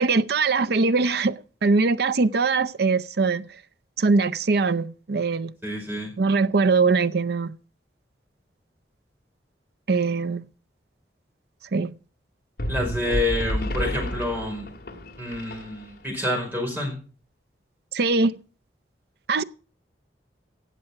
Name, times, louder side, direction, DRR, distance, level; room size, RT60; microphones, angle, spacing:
voice 1, 0.0-3.5 4.0-5.5 6.2-7.5 9.9-10.5 11.7-12.0 17.9-18.4 19.3-19.4, right 4 dB, 60° right, 0.5 m, -22 dB
voice 2, 5.6-6.1 12.7-14.6 15.2-17.0, left 1 dB, 10° right, 5.0 m, -28 dB
sound 1, 12.6-16.1, equal, 60° left, 2.2 m, -30 dB
17.0 x 7.6 x 5.8 m
head